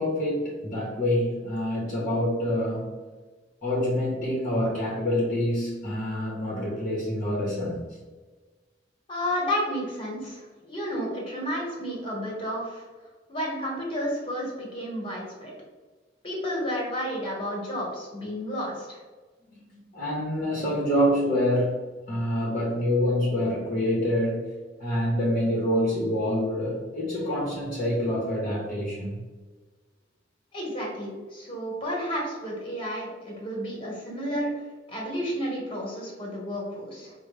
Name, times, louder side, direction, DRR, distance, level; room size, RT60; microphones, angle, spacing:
voice 1, 0.0-2.9 3.6-8.0 19.9-21.8 22.1-29.2, equal, 45° left, -5 dB, 1.0 m, -26 dB
voice 2, 9.1-12.8 13.3-15.5 16.2-19.0 30.5-34.5 34.9-37.1, equal, 30° left, -3 dB, 1.3 m, -31 dB
4.9 x 2.2 x 3.3 m, 1.3 s
head